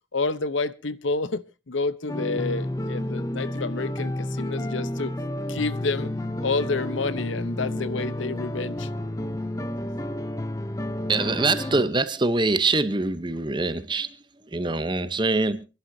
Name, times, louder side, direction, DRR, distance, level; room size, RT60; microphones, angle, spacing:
voice 1, 0.1-5.1 5.5-6.1 6.4-8.9, left 3 dB, 85° left, 0.9 m, -29 dB
sound 1, 2.1-11.8, left 1 dB, 20° left, 0.7 m, -31 dB
voice 2, 11.1-15.6, right 3 dB, 25° right, 0.8 m, -24 dB
26.5 x 11.5 x 2.7 m
head